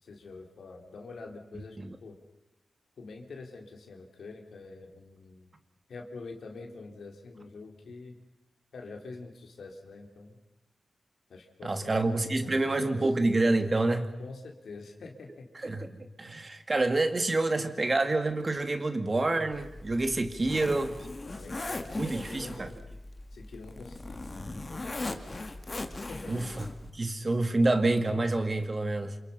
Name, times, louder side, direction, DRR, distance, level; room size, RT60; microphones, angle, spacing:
voice 1, 0.0-2.2 3.0-5.5 5.9-8.2 8.7-10.4 11.3-13.0 14.2-15.7 20.4-20.7 21.2-22.6 23.3-24.2 24.7-25.4 26.0-26.5, left 3 dB, 85° left, 3 dB, 3.7 m, -46 dB
voice 2, 11.6-14.1 15.6-21.0 22.0-22.7 26.3-26.7 26.9-29.1, right 2 dB, 35° right, 7 dB, 2.3 m, -27 dB
Zipper (clothing), 19.5-26.9, left 2 dB, 35° left, 2.1 m, -39 dB
28.0 x 27.5 x 5.7 m, 0.88 s
wide cardioid pair, 90°, 0 cm